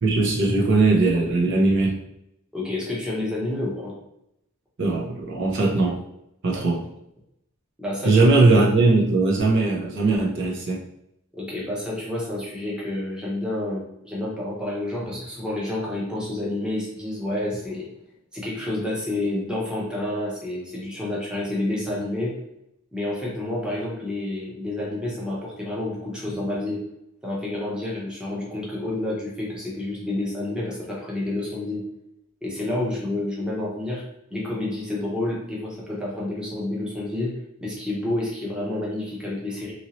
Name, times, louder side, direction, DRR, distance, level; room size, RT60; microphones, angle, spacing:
voice 1, 0.0-1.9 4.8-6.0 6.4-6.8 8.0-10.8, right 3 dB, 60° right, -2 dB, 0.7 m, -19 dB
voice 2, 2.5-3.9 6.5-6.6 7.8-8.2 11.3-17.9 18.3-22.3 22.9-26.8 27.2-31.8 32.4-34.0 34.3-37.3 37.6-39.7, left 1 dB, 5° right, -5 dB, 0.8 m, -29 dB
2.8 x 2.7 x 2.9 m, 0.80 s
head